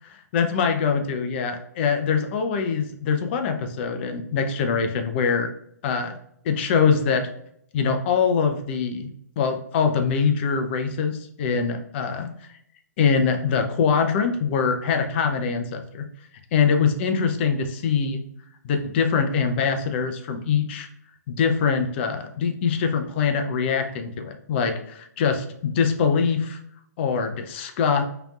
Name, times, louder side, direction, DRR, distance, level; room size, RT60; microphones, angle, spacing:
voice 1, 0.3-5.5 5.8-6.2 6.4-7.3 7.7-9.1 9.4-12.5 13.0-16.0 16.5-18.2 18.6-20.9 21.3-26.6 27.0-28.0, left 6 dB, 40° left, 6 dB, 0.6 m, -23 dB
5.0 x 3.0 x 2.4 m, 0.69 s
hypercardioid pair, 135°, 9 cm